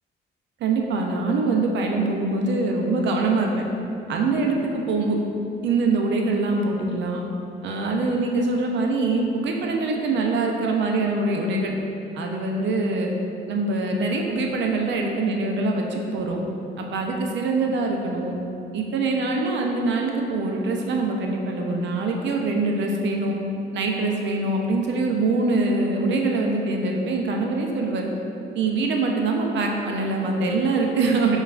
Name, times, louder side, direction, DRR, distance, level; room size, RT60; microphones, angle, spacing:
voice 1, 0.6-3.7 4.1-5.2 5.6-7.2 7.6-11.7 12.1-13.1 13.5-16.4 16.8-18.4 18.7-23.4 23.7-28.1 28.5-31.4, right 3 dB, 65° right, 1 dB, 0.5 m, -24 dB
5.2 x 2.4 x 2.4 m, 2.7 s
cardioid pair, 90°, 20 cm